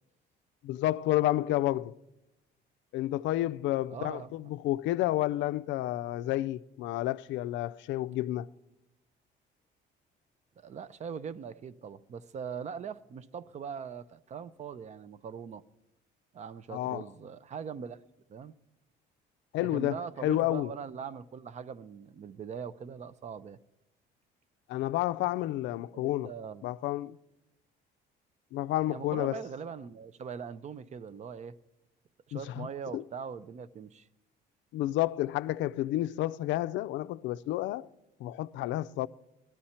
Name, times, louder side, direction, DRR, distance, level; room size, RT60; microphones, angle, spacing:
voice 1, 0.6-2.0 2.9-8.5 16.7-17.1 19.5-20.7 24.7-26.3 26.6-27.2 28.5-29.4 32.3-32.7 32.9-33.0 34.7-37.9 38.2-39.1, left 15 dB, 75° left, 0.4 m, -30 dB
voice 2, 3.9-4.3 10.6-15.6 16.3-18.0 18.3-18.5 19.6-23.6 25.9-26.6 28.9-31.5 32.3-34.1, right 6 dB, 35° right, 0.5 m, -41 dB
20.0 x 13.0 x 4.3 m
cardioid pair, 125°, 19 cm